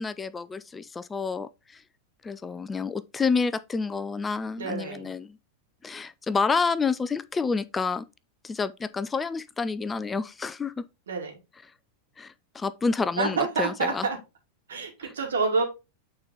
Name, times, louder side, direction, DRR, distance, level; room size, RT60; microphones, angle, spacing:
voice 1, 0.0-1.8 2.2-5.4 5.8-8.0 8.4-10.8 12.2-14.1 15.0-15.1, left 4 dB, 15° left, 0.4 m, -29 dB
voice 2, 4.6-5.1 11.1-11.3 13.2-14.2 14.7-15.6, right 4 dB, 70° right, 2.7 m, -27 dB
8.6 x 4.4 x 3.8 m
figure-of-eight pair, 90°, 0 cm